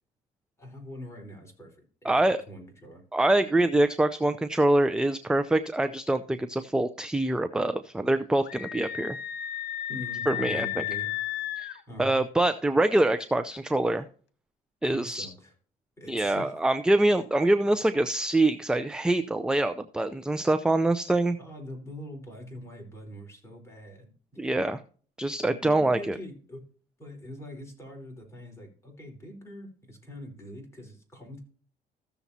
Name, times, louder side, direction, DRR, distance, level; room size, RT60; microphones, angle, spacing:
voice 1, 0.6-1.8 2.0-3.0 9.9-11.1 11.9-12.2 14.8-15.5 16.0-16.6 21.4-24.1 25.4-26.6 27.0-31.4, equal, 15° left, 1 dB, 4.2 m, -43 dB
voice 2, 2.0-2.4 3.1-9.2 10.3-10.8 11.6-14.1 14.8-15.3 16.1-21.4 24.4-24.8 25.2-26.2, right 1 dB, 5° right, 11 dB, 0.5 m, -25 dB
Screaming, 8.4-11.8, left 12 dB, 80° left, 1.2 m, -33 dB
15.0 x 7.0 x 2.8 m, 0.43 s
cardioid pair, 110°, 17 cm